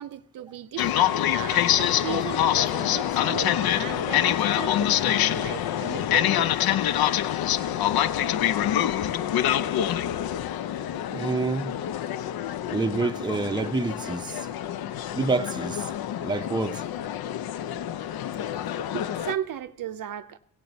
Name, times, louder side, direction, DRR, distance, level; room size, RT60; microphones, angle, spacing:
voice 1, 0.0-6.5 18.9-20.4, right 11 dB, 60° right, 0.5 m, -36 dB
sound 1, 0.8-19.3, left 11 dB, 70° left, 0.5 m, -26 dB
voice 2, 10.8-11.7 12.7-14.5 15.1-15.9 16.2-16.8, right 3 dB, 10° right, 0.6 m, -28 dB
15.0 x 8.8 x 4.0 m
cardioid pair, 65°, 38 cm